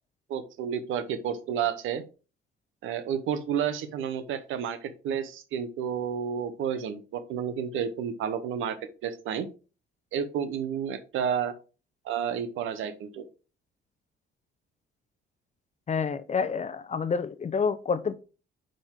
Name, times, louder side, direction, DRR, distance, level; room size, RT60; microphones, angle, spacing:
voice 1, 0.3-2.0 2.8-8.8 9.0-9.5 10.1-11.5 12.0-13.3, right 8 dB, 85° right, 0.9 m, -31 dB
voice 2, 15.9-18.2, left 5 dB, 35° left, 0.7 m, -28 dB
5.9 x 5.2 x 3.7 m
cardioid pair, 90°, 20 cm